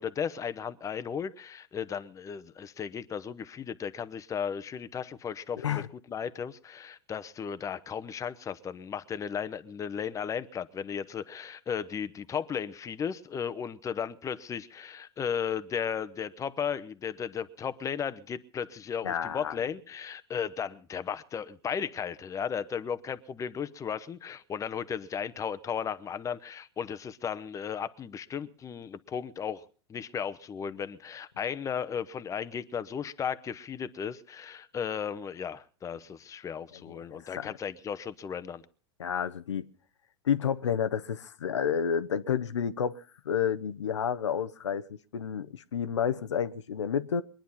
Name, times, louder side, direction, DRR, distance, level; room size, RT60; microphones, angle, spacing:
voice 1, 0.0-5.8 6.1-29.6 29.9-38.6, left 7 dB, 20° left, 0.9 m, -35 dB
voice 2, 5.6-5.9 19.0-19.6 36.8-37.5 39.0-39.7 40.2-47.2, left 8 dB, 90° left, 0.8 m, -30 dB
22.0 x 10.5 x 5.6 m
hypercardioid pair, 110°, 15 cm